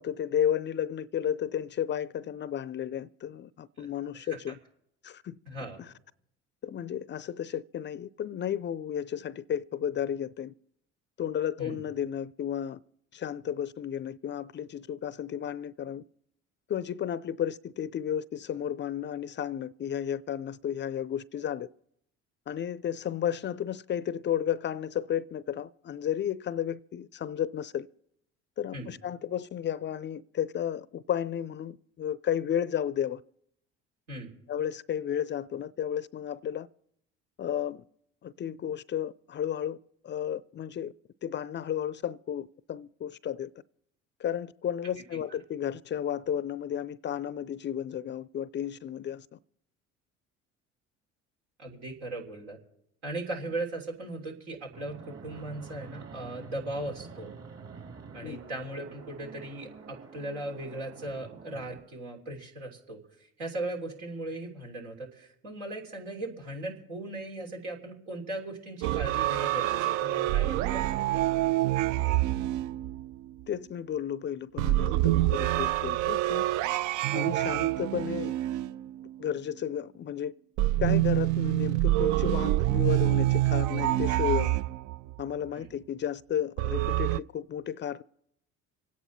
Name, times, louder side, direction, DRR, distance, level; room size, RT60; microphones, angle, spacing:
voice 1, 0.0-4.6 5.0-5.4 5.8-5.9 6.6-10.5 11.2-12.8 13.1-16.0 16.7-21.7 22.5-27.9 28.6-33.2 34.5-36.7 37.4-37.8 38.2-39.8 40.0-40.9 41.2-43.5 44.2-49.4 58.2-58.4 73.5-76.5 77.1-78.3 79.2-80.3 80.8-84.6 85.2-88.0, left 9 dB, 30° left, 0.4 m, -33 dB
voice 2, 5.5-5.8 11.6-11.8 28.7-28.9 34.1-34.3 51.6-52.6 53.0-57.3 58.1-70.9 85.5-85.7, right 2 dB, 80° right, 3.3 m, -38 dB
Fixed-wing aircraft airplane, 54.7-61.8, right 5 dB, 40° right, 2.6 m, -47 dB
sound 1, 68.8-73.4 74.6-79.3 80.6-85.2 86.6-87.2, right 16 dB, 60° right, 0.4 m, -27 dB
26.5 x 9.2 x 4.2 m
hypercardioid pair, 60°, 35 cm